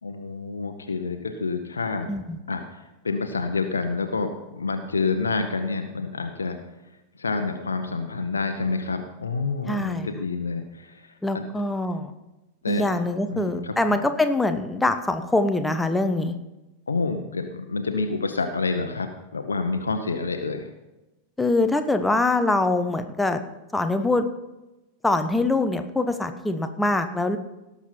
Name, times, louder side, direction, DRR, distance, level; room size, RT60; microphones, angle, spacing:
voice 1, 0.0-2.1 2.5-6.6 7.2-11.4 12.6-12.8 13.3-14.0 16.9-20.7, left 4 dB, 75° left, 6 dB, 0.9 m, -28 dB
voice 2, 2.1-2.4 9.7-10.1 11.2-12.1 12.7-16.3 21.4-23.4 23.7-24.3 25.0-27.4, left 2 dB, 5° left, 8 dB, 1.0 m, -24 dB
17.5 x 7.2 x 4.4 m, 1.0 s
figure-of-eight pair, 90°, 0 cm